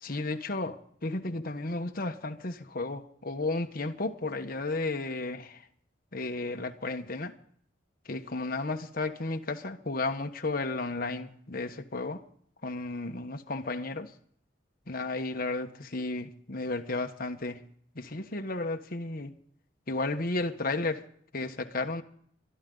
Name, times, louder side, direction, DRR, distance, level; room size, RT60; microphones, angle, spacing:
voice 1, 0.0-5.6 6.1-7.3 8.0-12.2 12.6-14.1 14.9-17.6 17.9-19.3 19.9-21.0 21.3-22.0, left 2 dB, 50° left, 6 dB, 1.3 m, -33 dB
24.0 x 12.5 x 3.9 m, 0.63 s
head